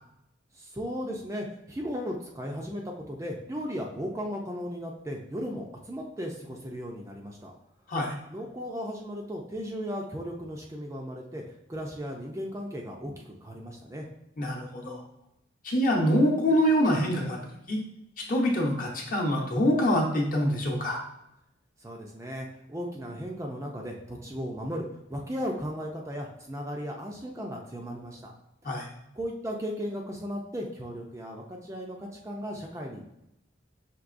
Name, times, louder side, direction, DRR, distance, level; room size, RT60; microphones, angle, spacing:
voice 1, 0.5-7.5 8.3-11.4 11.7-14.1 21.8-28.3 28.7-28.9 29.1-33.1, equal, 15° right, 0 dB, 0.4 m, -36 dB
voice 2, 14.4-15.0 15.6-17.4 17.7-17.8 18.2-21.0 28.6-28.9, equal, 45° left, -1 dB, 0.9 m, -25 dB
6.0 x 2.9 x 2.5 m, 0.85 s
head